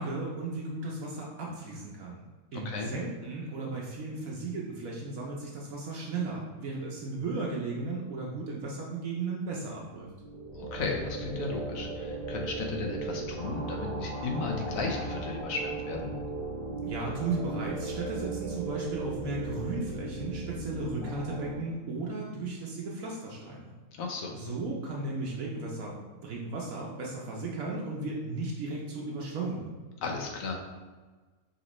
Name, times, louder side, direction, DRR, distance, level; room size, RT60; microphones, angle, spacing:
voice 1, 0.0-2.2 2.5-10.1 16.8-23.7 24.3-25.9 26.2-29.7, right 3 dB, 70° right, -3 dB, 1.1 m, -35 dB
voice 2, 2.5-2.9 10.5-16.1 23.9-24.4 30.0-30.5, left 4 dB, 70° left, 2 dB, 1.1 m, -34 dB
sound 1, 10.0-21.5, right 3 dB, 40° left, 1.8 m, -37 dB
5.1 x 2.9 x 3.0 m, 1.3 s
omnidirectional pair, 1.5 m